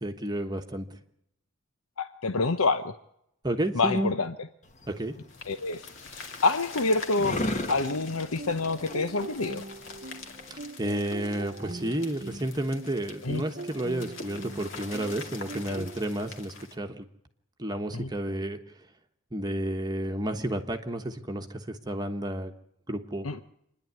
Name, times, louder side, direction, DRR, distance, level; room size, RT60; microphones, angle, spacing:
voice 1, 0.0-0.9 3.4-4.1 4.9-5.1 10.8-17.0 17.6-18.6 19.3-22.5 22.9-23.3, right 1 dB, 20° right, 4 dB, 1.2 m, -31 dB
voice 2, 2.0-2.9 3.7-4.5 5.5-5.9 6.4-7.4 7.7-9.6 13.2-13.4 15.7-15.9 17.9-18.1 23.2-23.4, left 3 dB, 75° left, 9 dB, 0.9 m, -27 dB
sound 1, 4.6-10.7, left 1 dB, 30° left, 1.3 m, -37 dB
sound 2, 5.3-16.7, left 4 dB, 60° left, 2.5 m, -44 dB
sound 3, 7.3-16.0, right 2 dB, 40° right, 1.0 m, -42 dB
26.5 x 10.5 x 9.5 m, 0.76 s
head